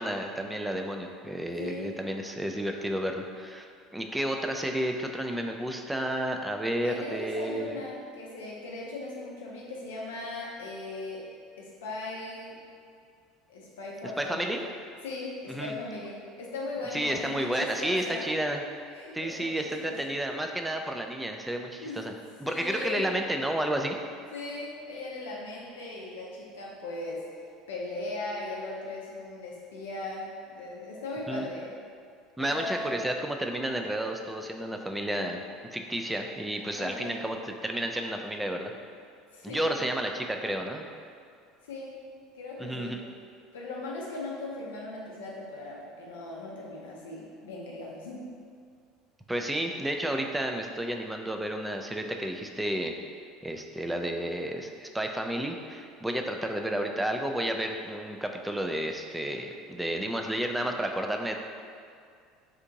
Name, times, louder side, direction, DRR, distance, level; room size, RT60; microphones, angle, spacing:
voice 1, 0.0-7.8 14.2-14.6 15.5-15.7 16.9-18.6 19.1-22.1 22.4-24.0 31.3-31.4 32.4-35.4 35.7-38.7 39.4-40.8 42.6-43.0 49.3-52.9 53.4-61.4, right 1 dB, 5° right, 3 dB, 0.3 m, -31 dB
voice 2, 1.6-1.9 6.8-11.3 11.6-12.6 13.5-14.6 15.0-18.3 18.9-20.1 21.8-22.1 22.4-23.1 24.3-27.2 27.7-31.7 32.4-33.0 36.7-37.3 39.3-39.8 41.6-42.0 42.3-43.0 43.5-48.3, left 2 dB, 75° left, -3 dB, 0.4 m, -38 dB
2.8 x 2.5 x 3.8 m, 2.3 s
hypercardioid pair, 70°, 0 cm